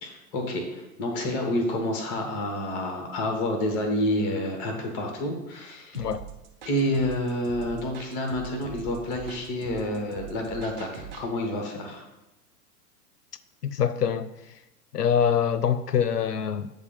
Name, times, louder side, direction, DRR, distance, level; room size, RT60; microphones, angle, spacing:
voice 1, 0.0-6.1 6.6-12.0, left 1 dB, 5° left, 0.3 m, -29 dB
voice 2, 5.9-6.2 13.6-14.3 14.9-16.7, left 8 dB, 80° left, 0.6 m, -24 dB
sound 1, 5.9-11.3, right 9 dB, 40° right, 0.9 m, -43 dB
7.9 x 3.6 x 5.4 m
figure-of-eight pair, 100°, 47 cm